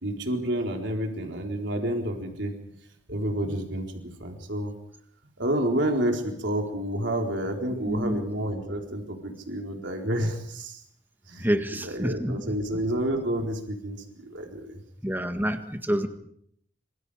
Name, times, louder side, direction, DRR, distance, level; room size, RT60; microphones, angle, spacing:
voice 1, 0.0-2.5 3.1-4.7 5.4-10.8 11.3-11.5 11.8-14.8, right 1 dB, 70° right, 2 dB, 4.3 m, -29 dB
voice 2, 7.9-8.2 11.4-12.6 15.0-16.1, equal, 10° right, 7 dB, 1.8 m, -28 dB
26.5 x 26.0 x 5.0 m, 0.68 s
head